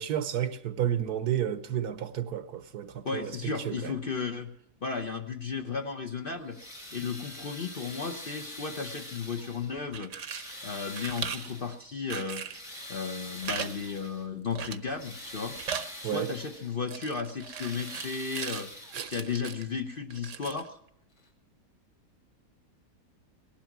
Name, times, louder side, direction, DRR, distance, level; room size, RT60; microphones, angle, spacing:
voice 1, 0.0-3.9 16.0-16.3 18.9-19.1, right 10 dB, 75° right, 1.4 m, -31 dB
voice 2, 3.0-4.5 4.8-6.6 6.9-10.1 10.6-12.4 12.9-15.6 16.0-18.7 19.0-20.8, left 5 dB, 45° left, 0.7 m, -34 dB
sound 1, 6.4-9.8 10.2-11.9 12.3-14.3 14.7-16.8 17.2-19.4 20.5-20.6 21.2-21.3, left 1 dB, 85° left, 3.5 m, -45 dB
sound 2, 9.8-10.5 10.9-11.5 12.1-12.7 13.4-13.7 14.0-14.1 14.6-14.9 15.2-15.9 16.9-18.7 18.9-19.7 20.1-20.7, right 7 dB, 55° right, 1.1 m, -38 dB
18.5 x 12.0 x 6.0 m
omnidirectional pair, 1.7 m